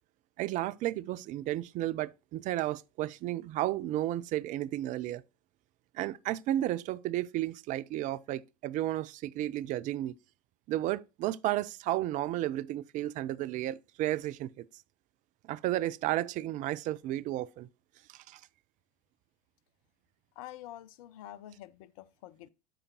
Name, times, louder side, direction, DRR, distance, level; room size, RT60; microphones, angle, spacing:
voice 1, 0.4-5.2 5.9-10.1 10.7-14.7 15.5-17.7 18.1-18.4, right 14 dB, 40° right, 0.4 m, -33 dB
voice 2, 20.4-22.5, left 13 dB, 60° left, 0.6 m, -47 dB
12.5 x 5.0 x 2.9 m
figure-of-eight pair, 75°, 20 cm